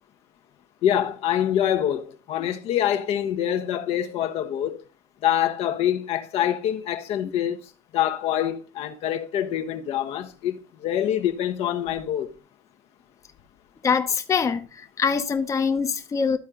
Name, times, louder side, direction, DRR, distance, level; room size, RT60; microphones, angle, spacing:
voice 1, 0.8-4.8 5.2-7.6 7.9-12.3, left 10 dB, 60° left, 1.1 m, -25 dB
voice 2, 13.8-16.4, left 6 dB, 25° left, 1.0 m, -24 dB
13.0 x 4.4 x 3.7 m
supercardioid pair, 100°, 12 cm